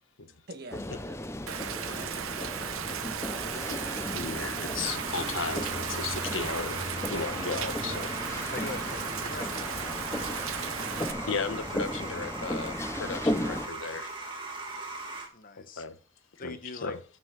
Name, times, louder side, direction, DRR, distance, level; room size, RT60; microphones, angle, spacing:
voice 1, 0.5-1.2 1.4-2.5 7.8-8.1, right 2 dB, 50° right, 1.5 m, -46 dB
sound 1, 0.7-13.7, left 1 dB, 15° left, 0.5 m, -36 dB
Rain, 1.5-11.1, right 8 dB, 90° right, 0.7 m, -36 dB
voice 2, 4.1-6.8 7.1-8.1 11.3-14.1 15.8-16.0 16.4-17.0, left 4 dB, 75° left, 0.9 m, -35 dB
sound 2, 4.9-15.3, right 2 dB, 25° right, 2.0 m, -39 dB
voice 3, 8.5-9.7 15.3-15.8 16.4-17.0, left 3 dB, 40° left, 0.9 m, -41 dB
9.7 x 6.3 x 5.8 m
head